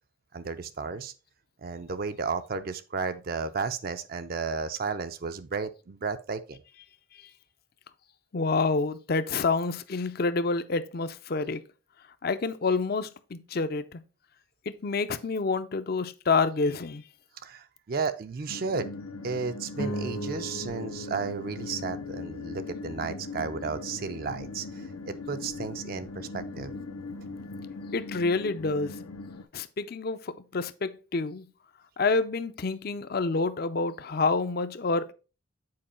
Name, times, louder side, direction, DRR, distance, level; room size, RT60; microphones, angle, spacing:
voice 1, 0.3-1.1 1.6-6.6 17.4-18.9 19.2-26.7, right 4 dB, 45° right, 0.4 m, -33 dB
voice 2, 8.3-11.6 12.2-14.0 14.8-17.0 27.9-29.0 29.5-31.4 32.0-35.1, left 4 dB, 45° left, 0.5 m, -28 dB
sound 1, 18.5-29.4, left 3 dB, 85° left, 0.7 m, -40 dB
sound 2, 19.7-24.3, right 1 dB, 65° left, 1.1 m, -39 dB
7.6 x 4.6 x 4.3 m
head